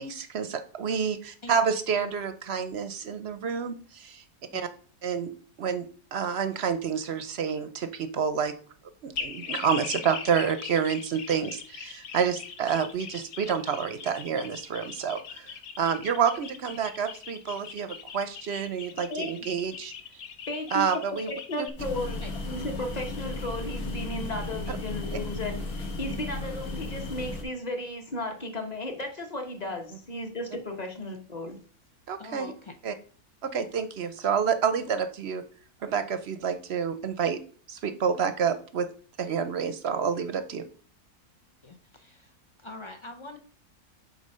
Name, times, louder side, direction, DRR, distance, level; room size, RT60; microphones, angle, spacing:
voice 1, 0.0-4.2 4.5-4.7 5.0-5.3 5.6-8.5 9.0-19.9 20.7-21.3 21.6-21.7 24.7-24.8 32.1-32.5 32.8-32.9 33.4-35.4 35.8-37.4 37.7-38.9 39.2-40.6, right 7 dB, 55° right, 11 dB, 0.7 m, -28 dB
sound 1, 9.1-21.7, left 7 dB, 90° left, 1.4 m, -40 dB
voice 2, 20.5-20.9 21.3-31.6, left 1 dB, 30° left, 4 dB, 1.2 m, -35 dB
sound 2, 21.8-27.4, left 2 dB, 75° left, 2.1 m, -35 dB
voice 3, 32.2-32.8 41.6-42.3 42.6-43.4, left 2 dB, 45° left, 7 dB, 0.3 m, -43 dB
8.0 x 4.0 x 5.4 m, 0.43 s
omnidirectional pair, 1.6 m